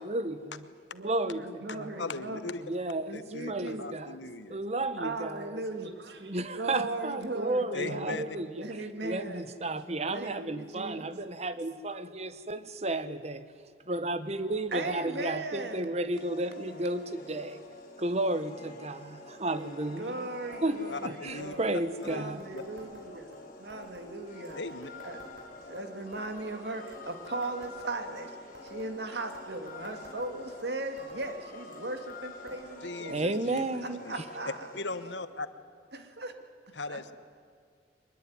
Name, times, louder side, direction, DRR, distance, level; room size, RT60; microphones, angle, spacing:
voice 1, 0.0-0.7 1.0-2.0 2.7-3.1 3.5-4.2 4.5-5.6 6.2-13.5 13.9-17.6 18.0-20.3 20.6-22.5 33.0-34.0, right 2 dB, 35° right, 1.1 m, -33 dB
voice 2, 0.9-2.6 3.1-4.2 5.0-9.4 10.1-11.1 14.7-16.0 19.2-19.3 20.0-21.7 22.0-23.3 23.6-24.6 25.0-25.2 25.7-28.4 28.6-33.2 33.8-34.6 35.9-36.3 36.7-37.0, right 2 dB, 65° right, 2.3 m, -38 dB
voice 3, 2.0-2.6 3.1-4.6 7.7-8.2 20.9-21.5 22.0-22.2 22.5-22.6 24.6-24.9 32.8-34.1 34.7-35.5 36.8-37.1, left 3 dB, 80° left, 1.2 m, -38 dB
sound 1, 16.1-35.1, left 2 dB, 45° left, 5.3 m, -47 dB
sound 2, 20.5-20.6 20.9-21.0 21.3-21.6 22.0-23.4 23.7-24.1 24.5-25.8 26.1-26.5 26.9-28.2 28.6-28.9 29.3-30.7 31.0-31.3 31.7-32.2 32.5-32.6 32.9-33.0 33.7-33.8 34.6-34.7, right 1 dB, 85° right, 5.6 m, -52 dB
23.5 x 21.0 x 9.5 m
head